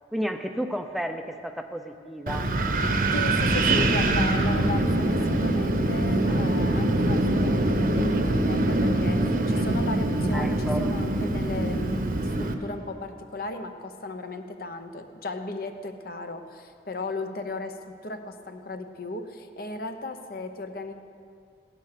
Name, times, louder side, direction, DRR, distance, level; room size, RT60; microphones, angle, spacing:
voice 1, 0.1-2.5 10.3-11.0, equal, ahead, 6 dB, 0.5 m, -32 dB
Wind, 2.3-12.5, right 1 dB, 50° right, 1.0 m, -24 dB
voice 2, 3.1-20.9, left 2 dB, 55° left, 7 dB, 0.9 m, -36 dB
16.5 x 10.0 x 6.7 m, 2.4 s
head